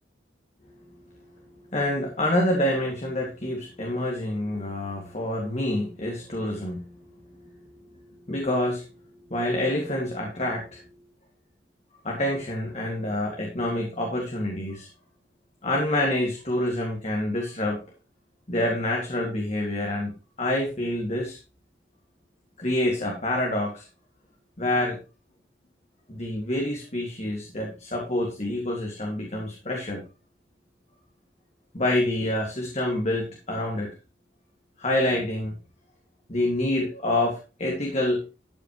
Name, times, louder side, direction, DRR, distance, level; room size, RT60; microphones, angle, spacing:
voice 1, 1.7-6.8 8.3-8.8 9.3-10.8 12.0-14.9 15.6-17.8 18.5-20.1 20.4-21.4 22.6-23.9 24.6-25.0 26.1-30.0 31.7-33.9 34.8-35.5 36.3-38.2, left 1 dB, 35° left, 0 dB, 2.2 m, -27 dB
13.0 x 8.9 x 3.1 m, 0.31 s
head